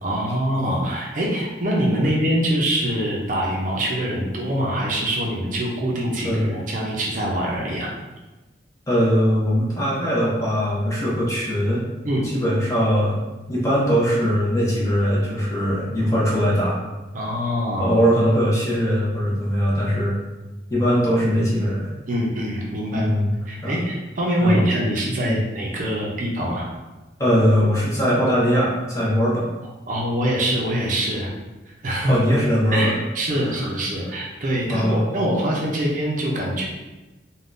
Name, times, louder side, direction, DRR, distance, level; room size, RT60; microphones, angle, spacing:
voice 1, 0.0-7.9 12.0-12.3 17.1-17.9 22.1-23.1 23.5-26.7 29.9-31.3 31.8-32.2 32.7-36.7, right 1 dB, 45° right, -2 dB, 0.5 m, -24 dB
voice 2, 8.9-11.8 12.3-13.2 13.5-16.8 17.8-20.2 20.7-21.9 22.9-23.4 23.6-23.8 24.4-24.7 25.2-25.4 27.2-29.5 32.1-33.0 33.3-33.7 34.7-35.1, equal, 15° left, -7 dB, 0.7 m, -21 dB
3.5 x 2.2 x 2.5 m, 1.1 s
head